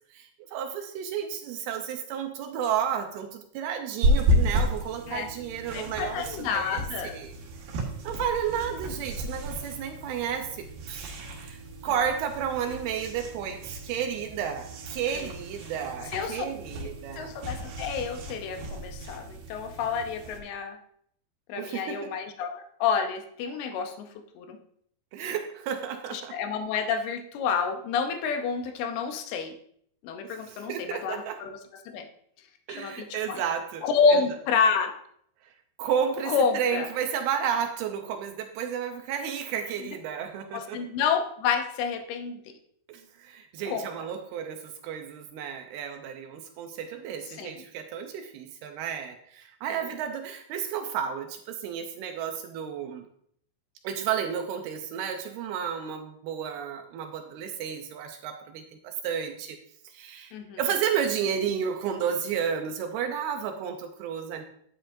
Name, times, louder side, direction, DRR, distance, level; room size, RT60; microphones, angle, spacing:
voice 1, 0.1-7.3 8.0-11.1 11.4-17.3 21.6-22.1 25.1-26.4 30.2-31.4 32.7-34.2 35.8-40.8 42.9-53.1 53.8-59.6 59.9-64.5, right 8 dB, 80° right, 6 dB, 2.3 m, -32 dB
sound 1, 4.0-20.4, equal, 65° right, 2.8 m, -32 dB
voice 2, 5.7-7.2 15.1-15.3 16.1-16.5 17.2-20.8 21.5-24.1 24.4-24.6 26.1-29.5 30.0-31.6 31.9-32.1 32.8-33.4 33.8-35.0 36.3-36.9 40.5-42.4 43.7-43.9 47.4-47.6 60.3-60.6, left 5 dB, 75° left, 6 dB, 2.4 m, -29 dB
10.0 x 9.7 x 2.6 m, 0.66 s
omnidirectional pair, 5.2 m